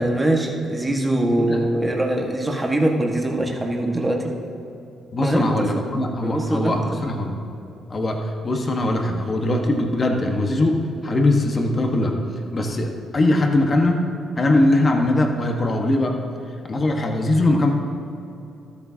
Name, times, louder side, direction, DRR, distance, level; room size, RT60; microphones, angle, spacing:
voice 1, 0.0-4.3 5.2-5.9 6.2-6.8, right 1 dB, 10° right, 0 dB, 1.6 m, -22 dB
voice 2, 5.1-7.4 7.9-12.2 12.5-14.0 14.4-16.2 16.7-17.7, left 1 dB, 35° left, 2 dB, 1.4 m, -21 dB
13.0 x 11.5 x 2.9 m, 2.8 s
cardioid pair, 90°, 0 cm